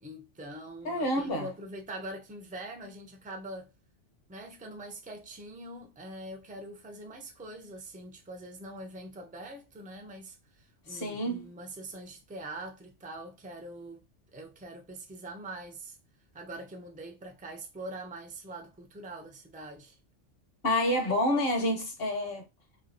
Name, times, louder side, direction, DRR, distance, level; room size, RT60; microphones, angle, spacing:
voice 1, 0.0-3.7 4.3-14.0 14.3-16.0 16.3-20.0, right 1 dB, 10° right, 0.4 m, -43 dB
voice 2, 0.8-1.5 10.9-11.4 20.6-22.5, left 1 dB, 55° left, 1.2 m, -28 dB
3.1 x 2.8 x 2.7 m
omnidirectional pair, 1.2 m